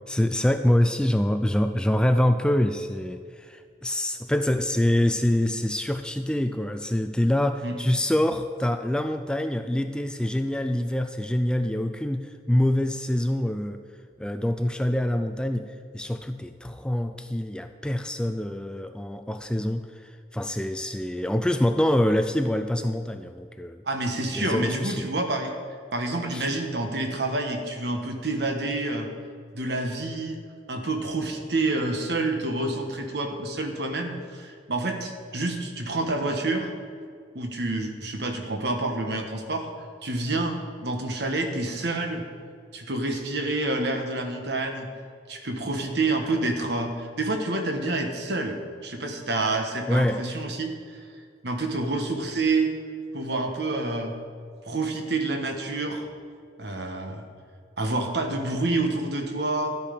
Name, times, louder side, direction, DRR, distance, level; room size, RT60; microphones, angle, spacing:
voice 1, 0.1-13.8 14.2-23.8 24.3-25.1 26.3-26.5 49.9-50.2, left 1 dB, 5° left, 8 dB, 0.3 m, -25 dB
voice 2, 23.9-25.5 25.9-29.1 29.5-30.4 30.7-36.7 37.3-39.7 40.0-42.2 42.7-44.9 45.3-51.1 51.4-52.7 53.1-54.1 54.6-56.0 56.6-57.2 57.8-59.7, right 2 dB, 65° right, 4 dB, 1.3 m, -28 dB
12.0 x 8.4 x 5.2 m, 2.1 s
head